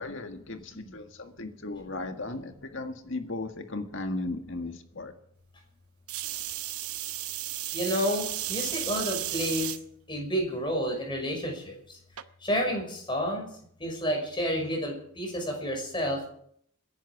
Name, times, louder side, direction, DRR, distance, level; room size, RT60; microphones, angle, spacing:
voice 1, 0.0-5.1, left 2 dB, 60° left, 6 dB, 1.8 m, -36 dB
sound 1, 6.1-9.8 10.4-10.9 12.2-12.3, right 14 dB, 90° right, 0.9 m, -34 dB
voice 2, 7.7-9.7 10.1-12.0 12.4-13.5 13.8-16.3, equal, 20° left, 1 dB, 5.7 m, -30 dB
27.0 x 11.0 x 4.9 m, 0.65 s
head